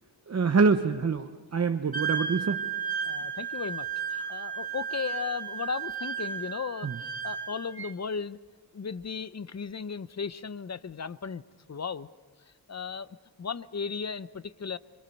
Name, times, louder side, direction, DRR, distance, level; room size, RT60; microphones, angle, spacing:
voice 1, 0.3-2.6 6.8-7.0, right 4 dB, 40° right, 8 dB, 0.8 m, -25 dB
Wind instrument woodwind instrument, 1.9-7.9, right 6 dB, 65° right, 2.2 m, -34 dB
voice 2, 3.0-3.9 4.1-8.4 8.7-11.4 11.7-12.1 12.7-14.8, left 6 dB, 40° left, 15 dB, 0.7 m, -36 dB
26.5 x 24.5 x 5.3 m, 1.3 s
wide cardioid pair, 90°, 40 cm